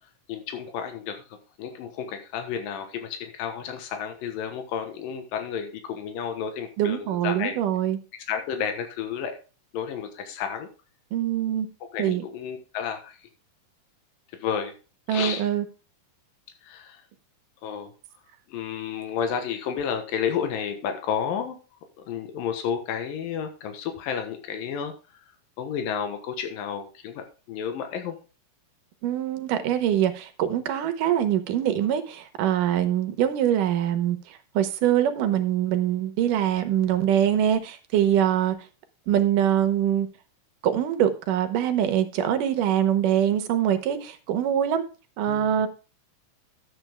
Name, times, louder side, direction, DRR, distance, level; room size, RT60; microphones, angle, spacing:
voice 1, 0.3-7.6 8.3-9.4 9.7-10.7 11.9-13.2 14.3-14.7 15.1-15.5 16.6-17.0 17.6-17.9 18.5-21.6 22.1-24.9 25.6-28.2 45.3-45.7, left 7 dB, 85° left, 3.0 m, -31 dB
voice 2, 6.8-8.0 11.1-11.7 12.0-12.2 15.1-15.7 29.0-38.6 39.1-40.1 40.6-44.8 45.2-45.7, right 10 dB, 80° right, 2.6 m, -23 dB
12.0 x 7.9 x 3.5 m
omnidirectional pair, 3.9 m